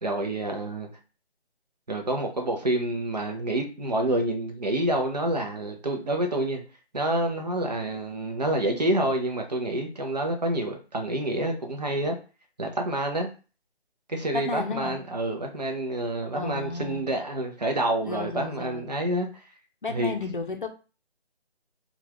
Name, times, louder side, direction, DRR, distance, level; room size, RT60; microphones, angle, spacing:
voice 1, 0.0-0.9 1.9-6.6 6.9-12.2 12.6-13.3 14.1-19.3 19.9-20.2, right 1 dB, 40° right, 0.8 m, -28 dB
voice 2, 14.3-15.0 16.3-17.1 18.0-18.9 19.8-20.7, left 3 dB, 50° left, 0.7 m, -32 dB
5.4 x 2.5 x 3.0 m
figure-of-eight pair, 165°, 33 cm